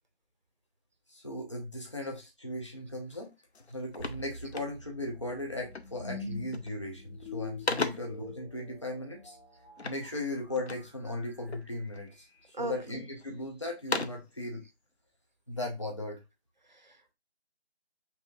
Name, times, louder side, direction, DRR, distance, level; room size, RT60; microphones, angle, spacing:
voice 1, 1.1-3.3 3.7-9.4 9.8-12.3 12.6-14.6 15.5-16.2, left 1 dB, 30° left, 0.8 m, -37 dB
sound 1, 3.1-3.3 3.5-5.1 5.7-6.1 6.4-6.9 7.2-8.3 9.8-11.0 11.5-12.1 12.6-13.3 13.7-14.4, left 4 dB, 80° left, 0.7 m, -37 dB
sound 2, 4.0-13.1, left 3 dB, 5° left, 1.6 m, -47 dB
voice 2, 12.5-13.0 16.7-17.1, right 2 dB, 45° right, 0.7 m, -39 dB
5.7 x 3.4 x 2.4 m
figure-of-eight pair, 170°, 33 cm